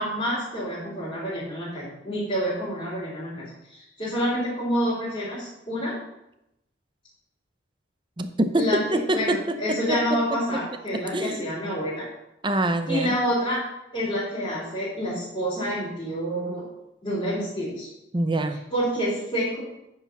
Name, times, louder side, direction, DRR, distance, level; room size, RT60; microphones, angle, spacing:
voice 1, 0.0-5.9 8.5-8.8 9.1-12.0 12.9-13.6 13.9-16.7 17.0-17.9 18.7-19.6, equal, 25° left, -11 dB, 3.6 m, -28 dB
voice 2, 8.2-8.6 8.9-9.4 9.9-10.0 11.1-11.5 12.4-13.2 18.1-18.6, right 1 dB, 25° right, 8 dB, 0.6 m, -24 dB
9.2 x 4.8 x 6.0 m, 0.88 s
head